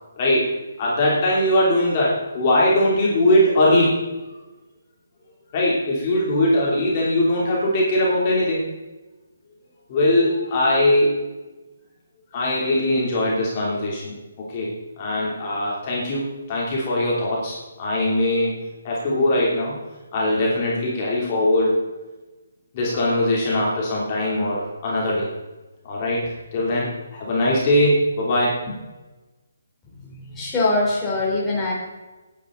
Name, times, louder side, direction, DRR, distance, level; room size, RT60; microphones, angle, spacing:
voice 1, 0.1-0.5 0.8-4.0 5.5-8.6 9.9-11.1 12.3-14.7 15.0-18.5 18.8-19.8 20.1-21.8 22.7-25.3 25.8-28.8, left 1 dB, 30° left, -5 dB, 3.0 m, -21 dB
voice 2, 30.3-31.7, left 2 dB, 10° left, -6 dB, 3.6 m, -22 dB
17.5 x 9.6 x 3.9 m, 1.1 s
hypercardioid pair, 165°, 0 cm